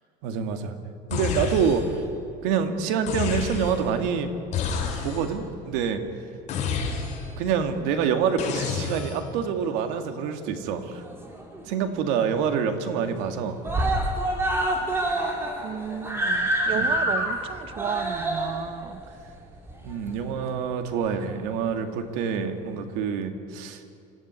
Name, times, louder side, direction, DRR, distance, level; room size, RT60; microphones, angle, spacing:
voice 1, 0.2-0.7 1.1-1.9 2.4-4.3 5.0-6.0 7.4-11.0 11.7-13.6 16.7-16.9 19.8-23.8, right 7 dB, 85° right, 7 dB, 2.3 m, -26 dB
sound 1, 1.1-2.0 3.1-3.9 4.5-5.4 6.5-7.4 8.4-9.3, left 5 dB, 40° left, 4.7 m, -29 dB
Screaming, 10.8-11.7 12.0-12.1 12.4-12.5 12.8-13.3 13.6-20.4 21.3-21.4, right 1 dB, 15° right, 3.0 m, -27 dB
voice 2, 15.6-19.0, right 8 dB, 30° right, 13 dB, 0.6 m, -33 dB
26.5 x 15.0 x 9.6 m, 2.6 s
cardioid pair, 170°, 19 cm